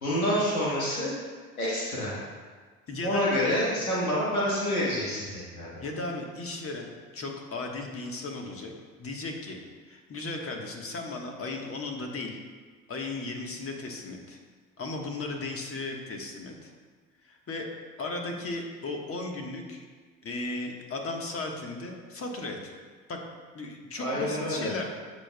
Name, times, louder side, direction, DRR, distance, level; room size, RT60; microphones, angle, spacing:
voice 1, 0.0-1.1 1.6-2.2 3.0-5.8 24.0-24.7, equal, 90° left, -6 dB, 1.6 m, -28 dB
voice 2, 2.9-3.2 5.8-9.6 9.9-12.4 12.9-14.4 14.8-16.7 17.2-17.7 18.0-19.8 20.2-22.7 23.1-23.2 23.5-24.8, left 2 dB, 35° left, 2 dB, 1.5 m, -36 dB
15.0 x 5.2 x 2.3 m, 1.5 s
figure-of-eight pair, 60°, 41 cm